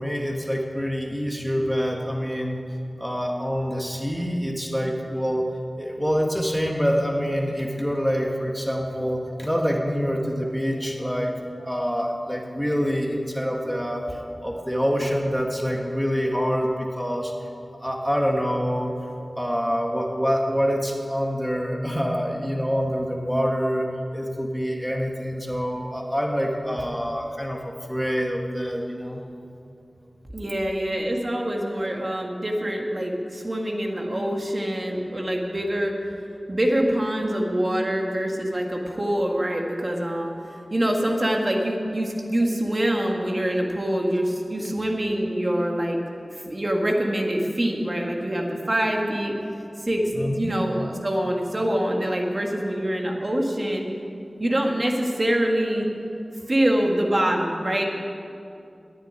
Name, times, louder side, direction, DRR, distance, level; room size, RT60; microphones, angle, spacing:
voice 1, 0.0-2.6 3.0-5.5 5.8-11.3 11.6-17.4 17.8-18.9 19.4-23.9 24.1-29.2 50.1-50.6, equal, ahead, 0 dB, 1.8 m, -26 dB
voice 2, 30.3-36.0 36.5-40.3 40.7-46.0 46.3-49.4 49.8-50.1 50.4-53.9 54.4-55.9 56.5-57.8, right 1 dB, 35° right, 1 dB, 2.0 m, -25 dB
10.5 x 9.7 x 9.8 m, 2.6 s
wide cardioid pair, 70°, 0 cm